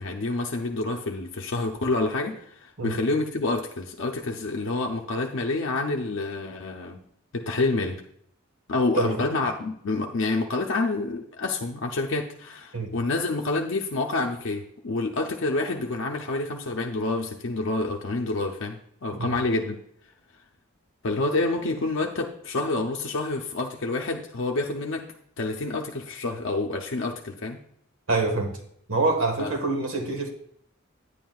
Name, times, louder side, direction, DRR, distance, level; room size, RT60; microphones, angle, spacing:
voice 1, 0.0-7.0 7.3-8.0 8.7-18.8 19.0-19.8 21.0-25.0 25.4-27.6 29.4-29.6, left 2 dB, 65° left, 1 dB, 0.6 m, -28 dB
voice 2, 28.1-28.5 28.9-30.3, right 3 dB, 80° right, 4 dB, 1.5 m, -25 dB
9.9 x 9.1 x 2.3 m, 0.67 s
head